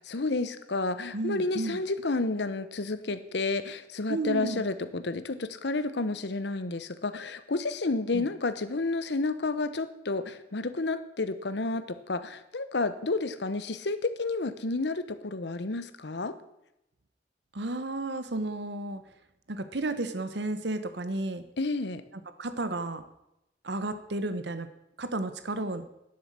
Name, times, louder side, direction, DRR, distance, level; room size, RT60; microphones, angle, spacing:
voice 1, 0.1-16.3 21.6-22.0, left 3 dB, 65° left, 12 dB, 0.9 m, -31 dB
voice 2, 1.1-1.8 4.1-4.6 8.1-8.3 17.5-19.0 19.5-21.4 22.4-23.0 23.6-24.7 25.0-25.8, right 2 dB, 65° right, 11 dB, 1.0 m, -32 dB
10.5 x 7.9 x 7.5 m, 0.87 s
head